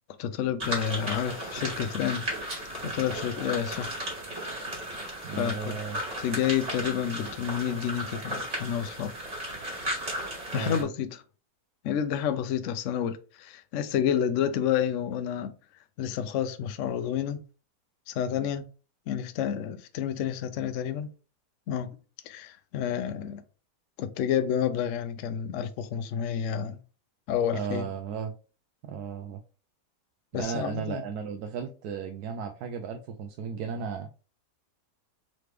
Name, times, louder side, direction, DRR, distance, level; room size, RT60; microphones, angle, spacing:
voice 1, 0.2-2.2 2.7-3.9 5.3-5.8 6.2-9.1 10.5-11.2 11.8-15.6 16.0-17.4 18.1-18.6 19.1-21.1 21.7-22.0 22.2-23.4 24.0-26.8 27.3-27.8 30.3-31.0, left 9 dB, 70° left, 0.7 m, -29 dB
sound 1, 0.6-10.8, right 1 dB, 45° right, 1.9 m, -35 dB
voice 2, 5.2-6.0 10.5-10.9 27.5-28.3 28.8-29.4 30.3-34.1, right 6 dB, 75° right, 1.0 m, -35 dB
3.9 x 3.2 x 3.3 m
omnidirectional pair, 1.7 m